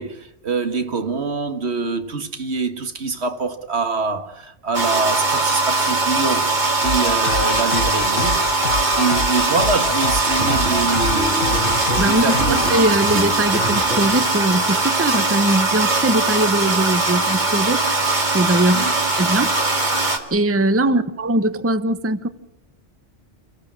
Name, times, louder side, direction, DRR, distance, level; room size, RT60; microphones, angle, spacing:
voice 1, 0.0-8.5 9.0-12.6 18.7-18.9 20.8-21.0, right 4 dB, 70° right, 1.9 m, -25 dB
sound 1, 4.7-20.2, right 3 dB, 40° right, 2.5 m, -20 dB
sound 2, 6.8-12.8, left 4 dB, 90° left, 1.5 m, -26 dB
sound 3, 10.3-14.3, right 2 dB, 85° right, 3.9 m, -29 dB
voice 2, 12.0-17.8 18.3-18.9 19.2-19.5 20.3-22.3, right 1 dB, 15° right, 0.8 m, -20 dB
29.5 x 15.5 x 7.5 m
omnidirectional pair, 1.2 m